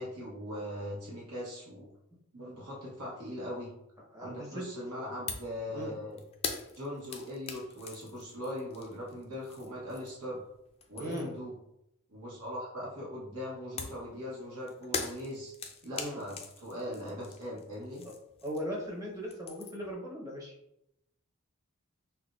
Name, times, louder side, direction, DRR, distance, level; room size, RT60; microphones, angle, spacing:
voice 1, 0.0-1.9 2.3-3.7 4.2-6.2 6.7-10.4 10.9-11.5 12.1-15.5 15.8-18.0, equal, 80° right, -5 dB, 1.0 m, -40 dB
voice 2, 4.1-4.7 5.7-6.0 11.0-11.3 15.9-16.2 18.0-18.1 18.4-20.5, equal, 15° right, -3 dB, 0.9 m, -38 dB
sound 1, 5.3-5.6 5.8-10.3 10.7-11.4 13.8-18.9 19.1-19.9, left 5 dB, 25° left, 0.3 m, -41 dB
5.6 x 2.1 x 2.4 m, 0.81 s
head